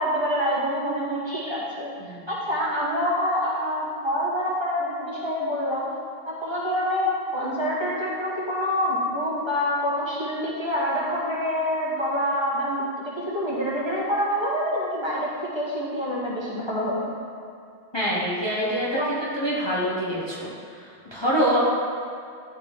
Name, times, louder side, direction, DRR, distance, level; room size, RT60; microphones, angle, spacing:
voice 1, 0.0-1.9 2.3-5.9 6.2-15.3 15.5-17.1 18.9-19.1, equal, 25° right, -7 dB, 1.3 m, -26 dB
voice 2, 17.9-20.5 21.1-21.6, equal, 25° left, -7 dB, 1.1 m, -25 dB
11.5 x 4.1 x 3.5 m, 2.4 s
omnidirectional pair, 1.1 m